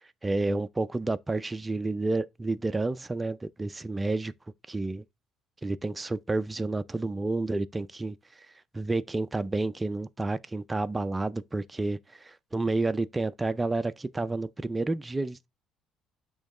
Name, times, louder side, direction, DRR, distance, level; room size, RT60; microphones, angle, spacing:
voice 1, 0.0-4.3 4.7-5.0 5.6-8.2 8.7-15.5, right 2 dB, 15° right, 0.4 m, -30 dB
8.6 x 3.1 x 3.7 m
cardioid pair, 135°, 0 cm